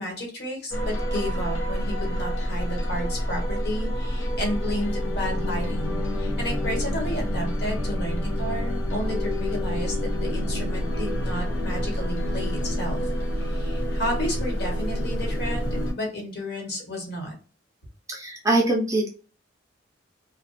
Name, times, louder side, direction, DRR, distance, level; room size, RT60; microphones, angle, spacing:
voice 1, 0.0-13.0 13.4-17.3, equal, 60° left, 0 dB, 1.2 m, -32 dB
sound 1, 0.7-15.9, equal, 80° left, 0.7 m, -27 dB
voice 2, 18.1-19.1, right 2 dB, 15° right, -1 dB, 0.5 m, -23 dB
2.4 x 2.2 x 2.5 m, 0.37 s
head